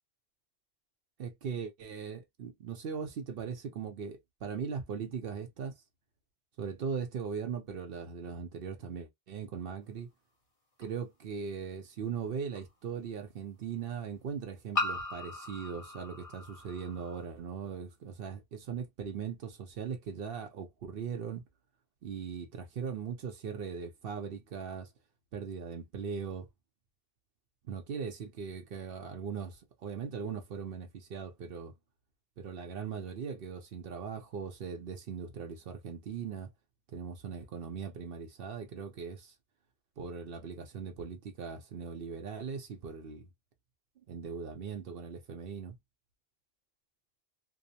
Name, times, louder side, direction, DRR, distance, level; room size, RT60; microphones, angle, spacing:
voice 1, 1.2-5.7 6.6-10.1 10.8-21.4 22.0-24.9 25.3-26.5 27.6-31.7 32.4-36.5 36.9-39.3 40.0-43.3 44.1-45.8, right 6 dB, 65° right, 0.8 m, -39 dB
sound 1, 10.8-10.9 12.5-12.6 14.7-17.2, left 2 dB, 35° left, 0.9 m, -37 dB
2.7 x 2.0 x 2.6 m
omnidirectional pair, 1.1 m